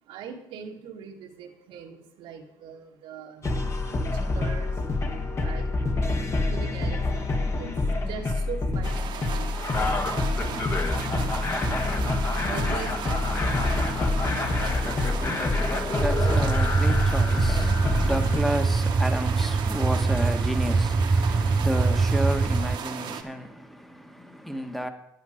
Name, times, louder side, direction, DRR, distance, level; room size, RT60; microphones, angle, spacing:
voice 1, 0.0-3.5 4.0-4.8 5.2-5.7 6.5-10.3 12.4-13.7, right 7 dB, 80° right, 1.7 m, -41 dB
sound 1, 3.4-18.4, left 2 dB, 30° left, 1.5 m, -26 dB
sound 2, 8.8-23.2, right 8 dB, 60° right, 1.3 m, -36 dB
voice 2, 14.9-24.9, equal, ahead, 1.4 m, -32 dB
sound 3, 16.0-22.8, right 4 dB, 25° right, 0.5 m, -23 dB
10.5 x 9.7 x 5.0 m
supercardioid pair, 90°, 9 cm